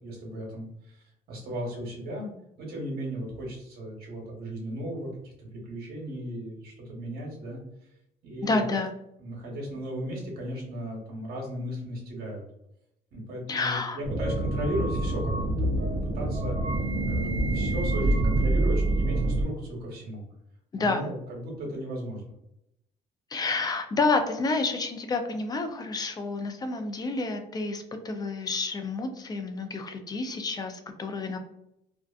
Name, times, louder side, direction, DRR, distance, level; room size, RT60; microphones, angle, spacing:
voice 1, 0.0-2.3 2.6-7.9 8.2-8.7 9.2-12.4 13.1-16.6 17.1-20.2 20.8-22.3, equal, 65° right, -1 dB, 1.0 m, -36 dB
voice 2, 8.4-8.9 13.5-14.0 20.7-21.1 23.3-31.4, left 3 dB, 25° left, 6 dB, 0.4 m, -29 dB
sound 1, 14.0-19.4, right 2 dB, 35° right, 0.6 m, -26 dB
2.4 x 2.4 x 2.3 m, 0.81 s
cardioid pair, 110°, 17 cm